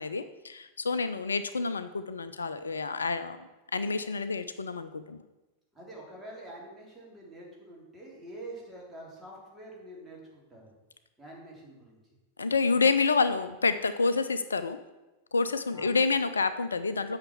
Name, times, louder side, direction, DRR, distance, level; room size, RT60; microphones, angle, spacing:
voice 1, 0.0-3.4 3.7-5.2 12.4-14.8 15.3-17.2, left 4 dB, 75° left, 12 dB, 0.5 m, -28 dB
voice 2, 5.7-10.7 11.2-12.0 15.7-15.9, right 1 dB, 10° right, -4 dB, 3.5 m, -46 dB
8.8 x 5.8 x 6.9 m, 1.1 s
figure-of-eight pair, 90°, 0 cm